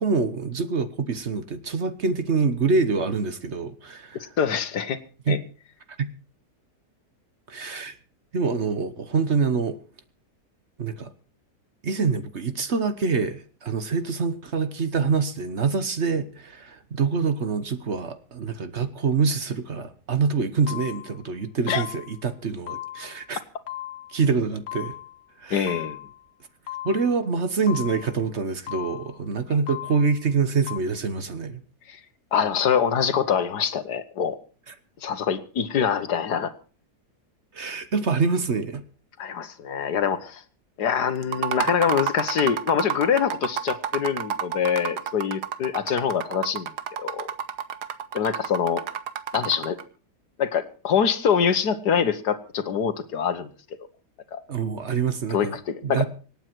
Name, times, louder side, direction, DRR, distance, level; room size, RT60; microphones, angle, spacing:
voice 1, 0.0-4.3 5.3-5.4 6.0-6.1 7.5-8.0 8.3-9.8 10.8-11.1 11.8-23.4 24.1-24.9 25.4-25.7 26.8-31.6 34.7-34.8 37.5-38.8 54.5-55.6 55.8-56.0, right 5 dB, 45° right, 1.3 m, -25 dB
voice 2, 4.4-5.0 5.3-5.4 21.7-21.8 25.5-26.0 31.9-32.0 32.3-34.4 35.0-36.5 39.2-40.4 40.8-46.7 47.0-47.3 48.1-48.8 49.3-49.8 50.4-53.5 54.3-54.4 55.3-56.1, left 7 dB, 80° left, 1.8 m, -24 dB
sound 1, 20.7-21.2 21.7-22.2 22.7-23.2 23.7-24.2 24.7-25.2 25.7-26.2 26.7-27.2 27.7-28.2 28.7-29.2 29.7-30.2 30.7-30.8, left 14 dB, 65° left, 1.5 m, -37 dB
sound 2, 41.2-49.8, right 8 dB, 85° right, 1.6 m, -30 dB
26.0 x 9.0 x 4.5 m
omnidirectional pair, 1.7 m